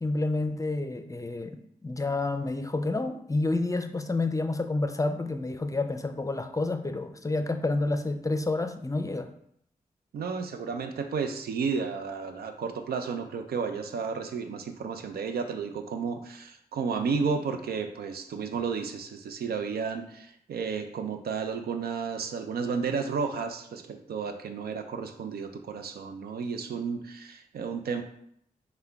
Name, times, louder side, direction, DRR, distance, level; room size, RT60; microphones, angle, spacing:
voice 1, 0.0-9.3, left 2 dB, 20° left, 8 dB, 0.5 m, -29 dB
voice 2, 10.1-28.0, right 5 dB, 85° right, 7 dB, 0.4 m, -32 dB
5.6 x 2.3 x 3.5 m, 0.71 s
cardioid pair, 40°, 16 cm